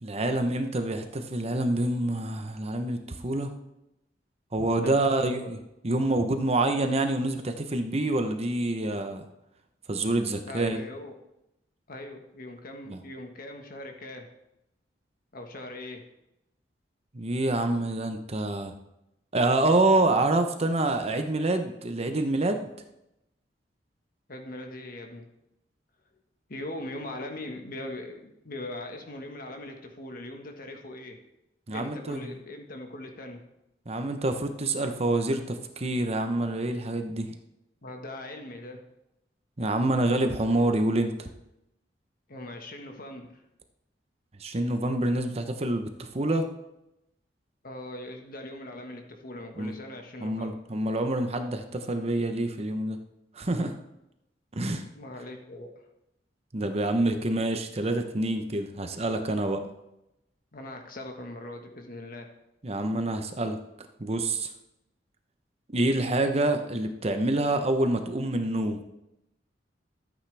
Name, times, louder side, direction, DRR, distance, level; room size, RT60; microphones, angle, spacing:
voice 1, 0.0-3.5 4.5-5.6 5.8-9.2 9.9-10.8 12.9-13.0 17.1-18.8 19.3-22.6 31.7-32.4 33.9-37.4 39.6-41.3 44.4-46.5 49.6-49.7 50.2-53.0 53.3-53.7 54.6-54.8 56.5-59.6 62.6-63.6 64.0-64.5 65.7-68.8, right 2 dB, 35° right, 7 dB, 0.8 m, -27 dB
voice 2, 4.8-5.6 10.5-11.1 11.9-14.3 15.3-16.0 24.3-25.3 26.5-31.2 31.7-33.4 37.8-38.8 42.3-43.4 47.6-50.6 54.9-55.8 60.5-62.3, left 1 dB, 55° left, 4 dB, 1.5 m, -40 dB
13.5 x 8.5 x 3.4 m, 0.87 s
head